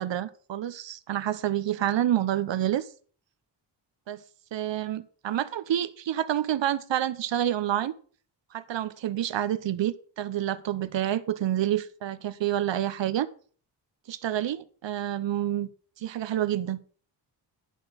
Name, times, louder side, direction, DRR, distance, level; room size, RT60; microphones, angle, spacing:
voice 1, 0.0-2.9 4.1-4.2 4.5-7.9 8.5-13.3 14.1-15.7 16.0-16.8, right 11 dB, 85° right, 15 dB, 0.9 m, -28 dB
11.0 x 6.1 x 6.4 m, 0.43 s
wide cardioid pair, 160°, 43 cm